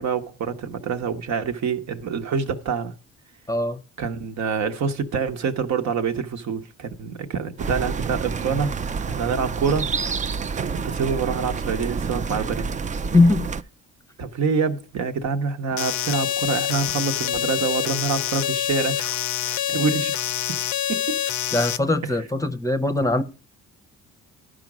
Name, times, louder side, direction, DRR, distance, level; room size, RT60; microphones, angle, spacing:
voice 1, 0.0-2.9 4.0-8.7 9.1-9.9 10.8-12.7 14.2-19.2 19.4-20.2 20.9-21.2, right 5 dB, 65° right, 1.0 m, -26 dB
voice 2, 3.5-3.8 13.1-13.5 21.5-23.2, left 2 dB, 10° left, 0.7 m, -20 dB
sound 1, 7.6-13.6, right 5 dB, 25° right, 0.4 m, -28 dB
sound 2, 15.8-21.8, left 11 dB, 70° left, 0.5 m, -26 dB
11.0 x 5.0 x 6.0 m
cardioid pair, 90°, 30 cm